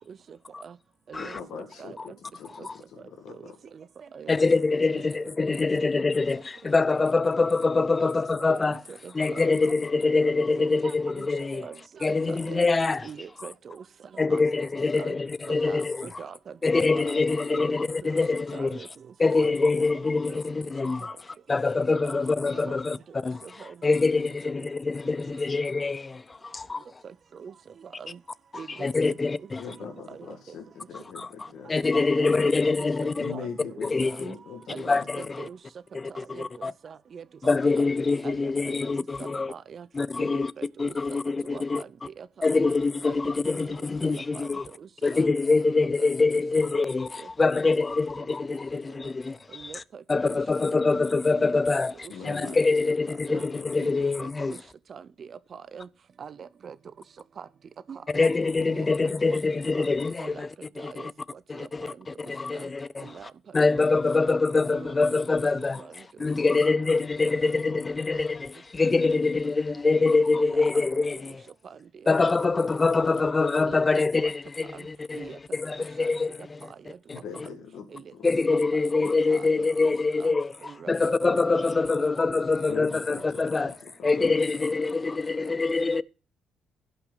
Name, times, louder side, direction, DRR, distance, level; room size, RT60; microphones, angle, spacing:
voice 1, 0.1-0.8 1.1-1.4 1.8-2.0 2.6-2.7 3.4-4.4 4.9-5.0 7.2-7.3 7.9-8.1 8.5-9.6 10.6-12.7 13.0-13.8 14.1-14.4 14.9-15.2 15.5-17.2 17.5-17.7 18.5-19.1 19.3-19.6 19.9-20.4 21.7-22.2 22.5-22.8 23.4-23.8 24.6-24.7 27.0-28.2 28.5-29.5 29.8-30.4 31.9-32.5 32.8-34.4 34.7-35.6 36.1-37.9 38.2-38.7 39.2-39.9 40.2-40.9 41.4-41.9 42.2-42.3 42.5-42.7 43.0-45.3 45.6-46.4 46.7-46.9 47.2-47.3 49.5-50.4 50.8-51.0 51.3-52.1 52.4-52.6 52.9-53.0 53.3-53.4 53.8-54.6 54.9-55.9 56.2-56.8 57.4-57.5 57.9-58.3 58.7-59.4 59.8-59.9 60.2-60.5 60.8-61.9 62.5-62.7 63.0-63.3 63.8-63.9 64.2-64.4 64.7-65.1 65.6-66.0 66.2-66.7 68.1-68.2 69.9-70.0 70.3-70.9 71.7-72.6 73.2-73.3 73.6-74.3 74.7-74.9 75.1-75.4 76.0-76.1 76.8-77.0 77.5-77.6 77.9-78.1 78.5-78.8 79.3-79.7 80.2-80.3 80.6-80.9 81.3-81.6 82.0-82.4 82.7-82.8 83.1-83.2 83.5-83.7 84.1-84.4 85.4-85.5, right 6 dB, 50° right, 0.7 m, -44 dB
voice 2, 1.2-3.5 29.6-31.7 33.2-35.3 52.1-52.6 53.3-54.0 77.1-77.9 78.2-78.3 82.7-84.5, left 6 dB, 70° left, 1.8 m, -42 dB
voice 3, 4.3-8.8 9.1-11.7 12.0-13.1 14.2-16.1 16.6-18.8 19.2-21.1 21.5-23.0 23.2-23.4 23.8-26.9 28.8-29.6 31.2-33.3 33.8-34.3 34.9-35.5 35.9-36.7 37.4-39.5 39.9-40.5 40.8-41.8 42.4-44.7 45.0-49.8 50.1-51.9 52.2-54.5 58.1-60.5 60.8-61.1 61.5-63.1 63.5-65.8 66.2-71.4 72.1-76.7 77.1-77.2 78.2-80.5 80.9-83.7 84.0-86.0, left 3 dB, 25° left, 0.5 m, -25 dB
16.0 x 5.7 x 4.0 m
cardioid pair, 90°, 0 cm